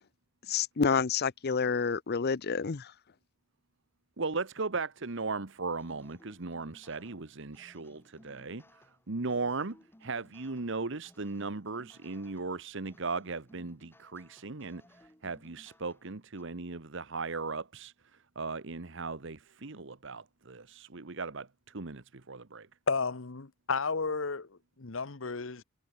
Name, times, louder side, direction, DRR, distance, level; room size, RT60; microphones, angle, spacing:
voice 1, 0.5-2.9, left 5 dB, 50° left, 0.6 m, -29 dB
voice 2, 4.2-22.7, right 3 dB, 65° right, 1.3 m, -37 dB
sound 1, 5.8-16.4, left 1 dB, 10° left, 7.1 m, -61 dB
voice 3, 22.9-25.6, left 4 dB, 70° left, 1.1 m, -33 dB
head